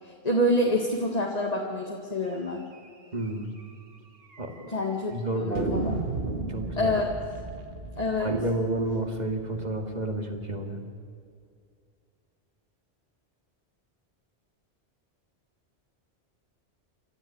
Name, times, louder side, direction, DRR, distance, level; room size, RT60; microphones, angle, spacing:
voice 1, 0.0-2.6 4.7-5.1 5.5-6.0 6.8-7.1 8.0-8.3, left 1 dB, 35° left, 0 dB, 2.1 m, -27 dB
sound 1, 2.7-2.9 3.2-3.3 3.6-3.7 4.3-4.8 5.6-10.3, right 3 dB, 60° right, 2.0 m, -35 dB
voice 2, 3.1-3.5 4.4-4.5 5.1-5.8 6.3-6.9 8.2-10.8, right 1 dB, 40° right, 4 dB, 2.5 m, -30 dB
27.5 x 13.5 x 8.8 m, 2.3 s
omnidirectional pair, 1.1 m